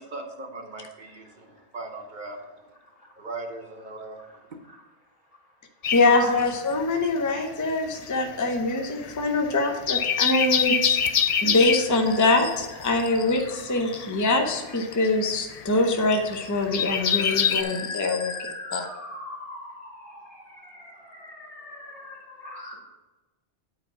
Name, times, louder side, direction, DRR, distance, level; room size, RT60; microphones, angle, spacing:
voice 1, 0.0-2.4 3.2-4.2, right 2 dB, 45° right, 3 dB, 0.9 m, -38 dB
voice 2, 4.2-4.9 5.9-6.5 12.1-12.2 12.5-12.6 13.0-14.8 15.5-15.7 16.1-16.2 16.8-22.7, left 2 dB, 85° left, -3 dB, 2.7 m, -38 dB
sound 1, 5.8-7.3 7.5-17.6, left 7 dB, 60° left, 0.4 m, -26 dB
voice 3, 5.9-11.0 11.4-18.4 18.7-18.8, left 2 dB, 20° left, 4 dB, 0.6 m, -24 dB
8.9 x 4.6 x 5.8 m, 1.1 s
omnidirectional pair, 1.2 m